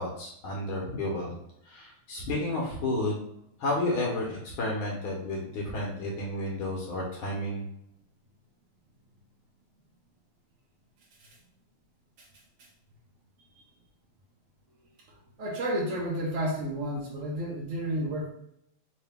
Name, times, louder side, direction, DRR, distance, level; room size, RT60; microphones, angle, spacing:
voice 1, 0.0-1.4 1.7-3.2 3.6-7.7, left 1 dB, 80° left, -2 dB, 1.7 m, -31 dB
voice 2, 15.4-18.3, equal, 60° right, -2 dB, 0.8 m, -31 dB
3.8 x 2.7 x 3.4 m, 0.74 s
omnidirectional pair, 2.3 m